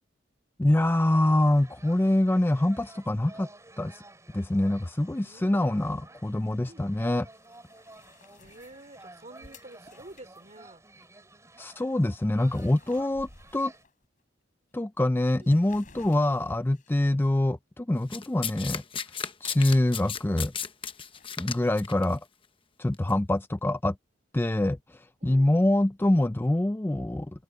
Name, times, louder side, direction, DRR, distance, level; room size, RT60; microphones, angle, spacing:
voice 1, 0.6-3.5 3.8-4.0 4.3-7.3 11.6-13.7 14.7-18.8 19.4-20.5 21.4-22.2 22.8-24.0 24.3-27.4, left 1 dB, 10° left, 0.4 m, -25 dB
sound 1, 0.7-13.8, right 2 dB, 15° right, 6.2 m, -52 dB
voice 2, 5.2-6.2 6.7-6.9 8.4-10.8 15.4-15.6 25.2-25.7, right 2 dB, 40° right, 4.2 m, -50 dB
sound 2, 7.2-11.1 11.5-11.7 12.0-14.2 14.7-14.8 15.2-17.1 20.8-21.3, left 3 dB, 45° left, 4.8 m, -56 dB
Domestic sounds home sounds, 18.1-22.0 22.9-23.1, left 7 dB, 30° left, 0.9 m, -34 dB
head